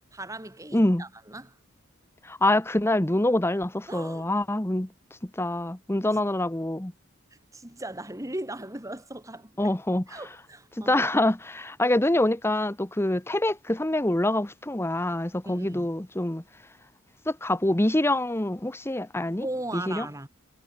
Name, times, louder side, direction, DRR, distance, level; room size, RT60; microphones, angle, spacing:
voice 1, 0.1-1.6 3.9-4.3 7.5-9.7 10.1-11.0 15.4-15.9 19.4-20.3, right 1 dB, 15° right, 3.1 m, -37 dB
voice 2, 0.7-1.0 2.2-4.9 5.2-6.9 9.6-10.2 10.7-16.4 17.3-19.5 19.7-20.1, left 1 dB, 10° left, 0.9 m, -25 dB
head